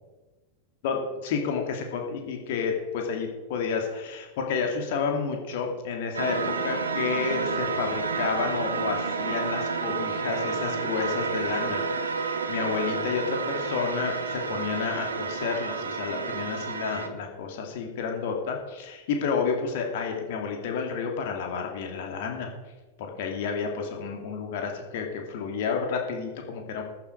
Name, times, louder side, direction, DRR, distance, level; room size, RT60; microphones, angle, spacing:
voice 1, 0.8-6.4 6.6-22.5 23.0-26.8, left 5 dB, 50° left, 2 dB, 2.6 m, -30 dB
sound 1, 6.1-17.1, right 5 dB, 75° right, 1.3 m, -30 dB
14.0 x 10.5 x 4.7 m, 1.2 s
figure-of-eight pair, 90°, 0 cm